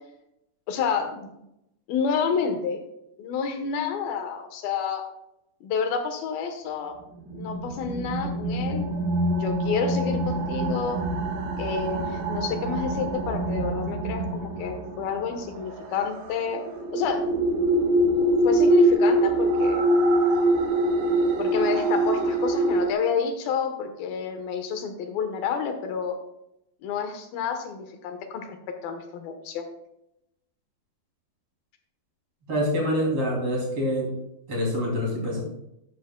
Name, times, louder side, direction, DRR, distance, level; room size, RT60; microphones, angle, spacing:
voice 1, 0.7-1.3 1.9-2.8 3.2-5.0 5.6-7.0 7.3-8.8 9.4-11.0 11.6-16.6 16.9-17.2 18.4-19.8 21.4-26.2 26.8-28.6 28.8-29.7, left 6 dB, 85° left, 6 dB, 3.0 m, -29 dB
sound 1, 7.2-22.9, right 1 dB, 85° right, 3.2 m, -24 dB
voice 2, 32.5-34.1 34.5-35.4, equal, 40° right, -2 dB, 3.7 m, -26 dB
13.0 x 10.0 x 2.3 m, 0.83 s
omnidirectional pair, 4.1 m